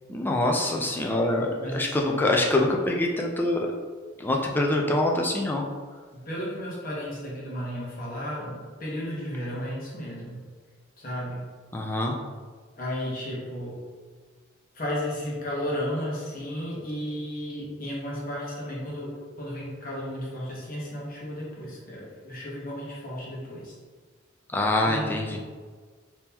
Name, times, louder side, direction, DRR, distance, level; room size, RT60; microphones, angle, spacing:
voice 1, 0.1-3.7 4.2-5.6 11.7-12.1 24.5-25.4, left 1 dB, 10° left, 0 dB, 0.3 m, -25 dB
voice 2, 1.6-2.2 6.2-10.4 11.0-11.4 12.8-13.8 14.7-23.7 24.8-25.4, equal, 45° left, -5 dB, 0.9 m, -34 dB
3.6 x 2.7 x 2.8 m, 1.5 s
head